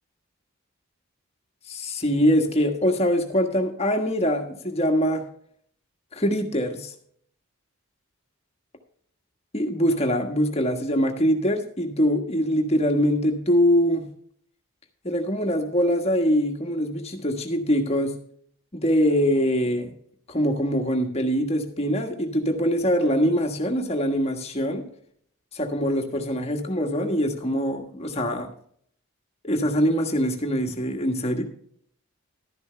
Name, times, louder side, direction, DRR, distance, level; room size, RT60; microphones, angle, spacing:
voice 1, 1.7-5.3 6.1-6.9 9.5-14.1 15.0-18.2 18.7-19.9 20.3-24.9 25.5-28.5 29.4-31.4, equal, 30° left, 3 dB, 1.4 m, -23 dB
12.0 x 10.5 x 3.3 m, 0.62 s
head